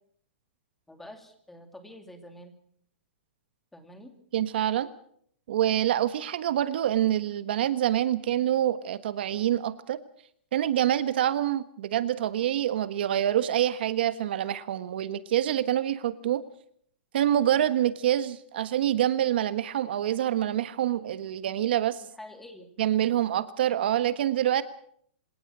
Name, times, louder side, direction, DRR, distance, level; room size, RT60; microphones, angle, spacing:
voice 1, 0.9-2.5 3.7-4.1 22.0-22.7, left 1 dB, 5° left, 6 dB, 2.5 m, -47 dB
voice 2, 4.3-4.9 5.5-10.0 10.5-16.4 17.1-22.0 22.8-24.6, right 11 dB, 60° right, 13 dB, 1.4 m, -26 dB
26.5 x 18.5 x 6.2 m, 0.64 s
hypercardioid pair, 155°, 6 cm